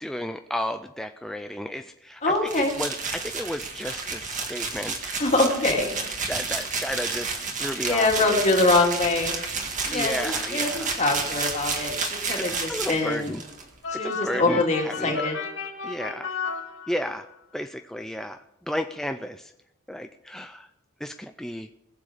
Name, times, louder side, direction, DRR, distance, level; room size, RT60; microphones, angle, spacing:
voice 1, 0.0-5.1 6.3-8.7 9.8-10.9 12.3-13.4 13.9-15.3 15.8-16.3 16.9-19.5 19.9-20.7 21.0-21.7, equal, ahead, 7 dB, 0.3 m, -33 dB
voice 2, 2.2-2.7 5.2-6.0 7.8-9.3 9.9-13.3 13.9-15.4, left 2 dB, 35° left, 1 dB, 2.3 m, -24 dB
sound 1, 2.5-13.6, right 4 dB, 40° right, 1.8 m, -31 dB
sound 2, 13.8-17.3, left 6 dB, 65° left, 1.9 m, -34 dB
20.5 x 7.5 x 5.0 m, 0.83 s
head